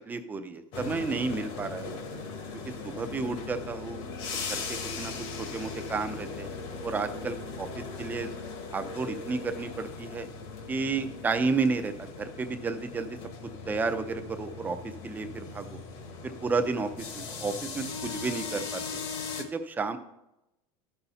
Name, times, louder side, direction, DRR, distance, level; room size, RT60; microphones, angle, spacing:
voice 1, 0.1-2.0 2.7-4.0 4.3-5.1 5.4-6.5 6.8-8.3 8.7-10.3 10.7-13.2 13.7-14.8 15.0-15.8 16.2-18.8 19.4-20.0, right 4 dB, 15° right, 9 dB, 0.5 m, -32 dB
sound 1, 0.7-19.4, left 4 dB, 50° left, 1.1 m, -39 dB
12.5 x 5.6 x 4.0 m, 0.89 s
cardioid pair, 160°, 13 cm